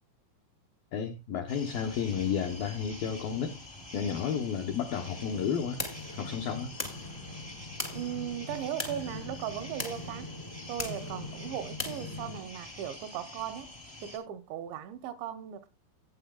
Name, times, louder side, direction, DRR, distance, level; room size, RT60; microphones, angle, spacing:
voice 1, 0.9-3.6 3.9-5.8 6.2-6.7, left 7 dB, 85° left, 2.0 m, -32 dB
sound 1, 1.5-14.2, left 2 dB, 65° left, 0.3 m, -47 dB
sound 2, 5.0-12.4, left 2 dB, 45° left, 0.7 m, -40 dB
voice 2, 7.9-10.3 10.7-13.7 14.0-15.7, right 10 dB, 80° right, 2.9 m, -37 dB
17.0 x 8.4 x 2.2 m
omnidirectional pair, 5.3 m